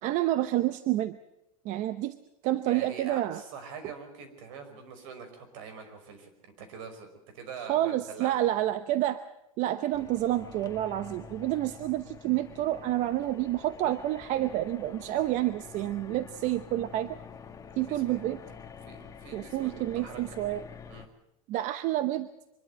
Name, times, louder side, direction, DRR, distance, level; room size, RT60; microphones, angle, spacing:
voice 1, 0.0-1.2 1.6-2.2 2.4-3.4 7.7-9.2 9.6-17.2 17.8-18.4 19.3-20.6 21.5-22.3, right 14 dB, 45° right, 12 dB, 0.8 m, -29 dB
voice 2, 2.6-7.1 7.3-8.6 15.7-15.9 17.9-18.6 18.9-20.2 20.9-21.1, right 6 dB, 65° right, 6 dB, 5.2 m, -44 dB
sound 1, 9.9-21.1, left 6 dB, 20° left, 1.8 m, -47 dB
24.5 x 12.0 x 9.2 m, 0.87 s
supercardioid pair, 135°, 18 cm